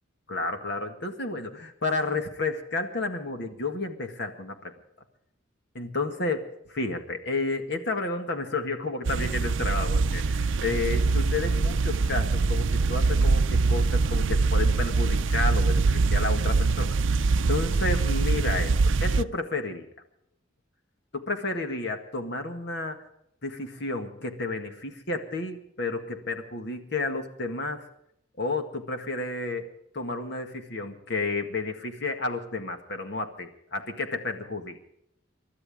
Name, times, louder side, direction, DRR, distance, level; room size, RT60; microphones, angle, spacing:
voice 1, 0.3-4.7 5.8-17.0 17.4-19.9 21.1-23.0 23.4-27.9 28.4-29.7 29.9-34.8, left 3 dB, 60° left, 6 dB, 1.9 m, -31 dB
sound 1, 9.0-19.2, right 3 dB, 70° right, 0.5 m, -23 dB
29.0 x 12.5 x 3.7 m, 0.75 s
head